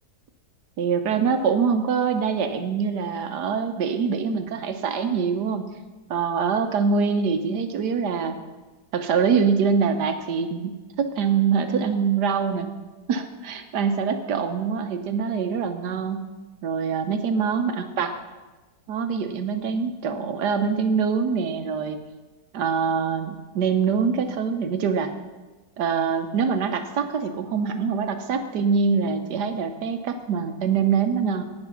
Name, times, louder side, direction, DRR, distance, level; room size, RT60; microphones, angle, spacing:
voice 1, 0.8-5.6 6.1-8.4 8.9-12.7 13.1-16.2 16.6-18.2 18.9-22.0 22.5-25.1 25.8-31.4, right 6 dB, 70° right, 8 dB, 1.4 m, -24 dB
17.5 x 6.0 x 5.8 m, 1.2 s
omnidirectional pair, 1.9 m